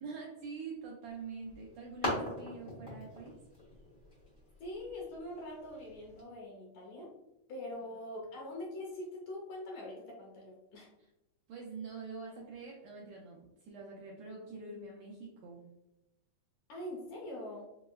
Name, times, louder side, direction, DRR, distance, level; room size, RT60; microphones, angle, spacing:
voice 1, 0.0-3.4 11.0-11.1 11.5-15.6, right 4 dB, 80° right, -3 dB, 1.6 m, -45 dB
sound 1, 1.1-6.2, left 1 dB, 45° left, 1.1 m, -42 dB
voice 2, 4.6-7.1 7.5-10.9 16.7-17.7, left 1 dB, 75° left, -2 dB, 1.9 m, -43 dB
6.2 x 2.1 x 2.2 m, 0.91 s
omnidirectional pair, 3.6 m